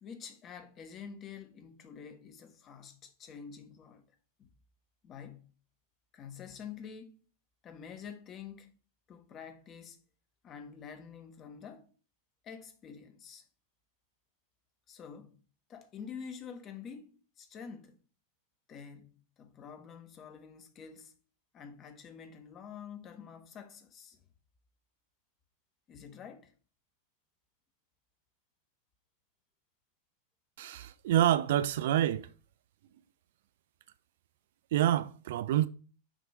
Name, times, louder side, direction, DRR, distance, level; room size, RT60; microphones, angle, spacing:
voice 1, 0.0-4.1 4.4-4.5 5.0-5.5 6.1-7.2 7.6-8.8 9.1-10.0 10.4-11.9 12.4-13.4 14.9-15.4 15.7-18.0 18.7-19.1 19.4-21.1 21.5-24.2 25.9-26.5, left 7 dB, 30° left, 1.0 m, -47 dB
voice 2, 30.6-32.3 34.7-35.7, right 12 dB, 55° right, 0.3 m, -27 dB
6.3 x 2.9 x 5.6 m
figure-of-eight pair, 90°, 0 cm